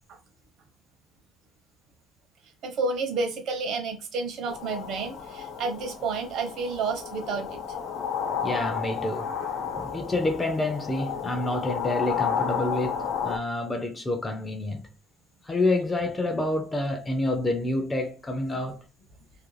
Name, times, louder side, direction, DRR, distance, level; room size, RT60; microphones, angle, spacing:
voice 1, 2.6-7.6, right 4 dB, 55° right, 0.6 m, -30 dB
sound 1, 4.5-13.4, left 7 dB, 70° left, 0.8 m, -32 dB
voice 2, 8.4-9.3 9.7-14.9 15.4-18.8, left 2 dB, 15° left, 0.3 m, -28 dB
2.4 x 2.3 x 3.0 m
cardioid pair, 180°, 0 cm